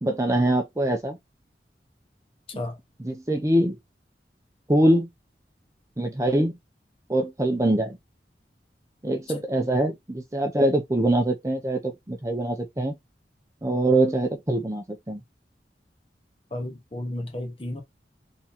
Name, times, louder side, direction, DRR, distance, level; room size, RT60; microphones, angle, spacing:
voice 1, 0.0-1.2 3.0-3.8 4.7-5.1 6.0-6.5 7.1-8.0 9.0-12.9 13.6-15.2, right 1 dB, 20° right, 0.6 m, -23 dB
voice 2, 16.5-17.8, left 1 dB, 30° left, 1.0 m, -33 dB
3.7 x 2.9 x 4.2 m
head